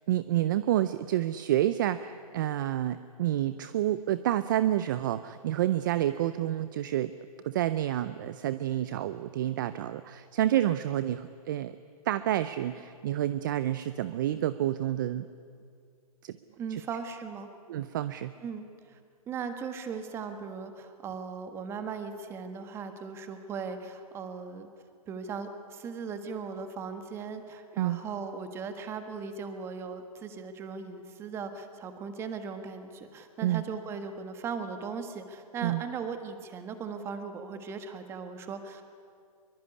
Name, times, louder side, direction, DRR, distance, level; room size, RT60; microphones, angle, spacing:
voice 1, 0.1-7.1 7.4-11.7 12.1-15.3 16.2-16.3 16.7-16.8 17.7-18.3 27.8-28.0 33.4-33.6 35.6-35.8, right 12 dB, 30° right, 14 dB, 0.6 m, -29 dB
voice 2, 16.6-17.5 18.4-19.0 19.3-24.7 25.1-38.8, right 5 dB, 10° right, 8 dB, 1.5 m, -38 dB
23.5 x 22.5 x 9.7 m, 2.2 s
hypercardioid pair, 160°, 20 cm